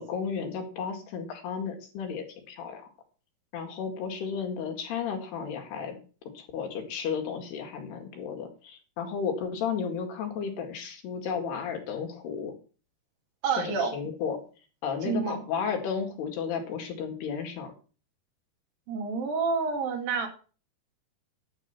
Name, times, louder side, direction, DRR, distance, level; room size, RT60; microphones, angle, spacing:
voice 1, 0.0-2.9 3.5-6.0 6.4-12.5 13.6-14.4 14.8-17.7, left 6 dB, 85° left, 3 dB, 4.2 m, -33 dB
voice 2, 13.4-14.0 15.0-15.4 18.9-20.3, right 5 dB, 65° right, 4 dB, 3.8 m, -28 dB
11.5 x 8.3 x 5.9 m, 0.38 s
omnidirectional pair, 4.6 m